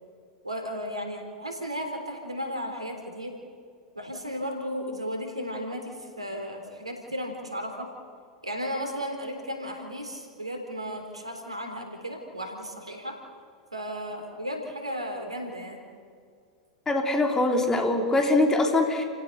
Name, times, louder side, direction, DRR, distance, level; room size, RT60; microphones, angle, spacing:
voice 1, 0.4-3.3 4.0-7.9 8.4-13.2 13.7-15.8, equal, 90° right, 4 dB, 3.6 m, -34 dB
voice 2, 16.9-19.0, left 2 dB, 15° left, 2 dB, 3.4 m, -23 dB
30.0 x 16.5 x 6.7 m, 2.2 s
figure-of-eight pair, 90°, 3 cm